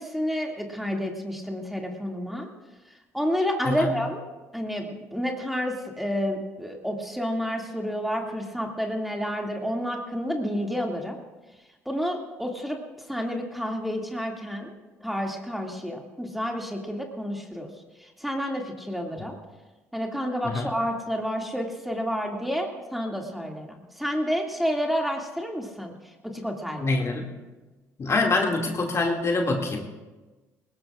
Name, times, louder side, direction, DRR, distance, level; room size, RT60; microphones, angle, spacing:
voice 1, 0.0-2.5 3.1-4.2 4.5-11.2 11.9-12.8 13.1-14.7 15.0-17.7 18.2-19.4 19.9-25.9 26.2-27.0, equal, ahead, 1 dB, 2.4 m, -29 dB
voice 2, 3.6-4.0 20.4-20.7 26.8-27.2 28.0-29.8, left 3 dB, 40° left, 1 dB, 2.3 m, -25 dB
20.0 x 18.5 x 2.5 m, 1.2 s
hypercardioid pair, 60°, 8 cm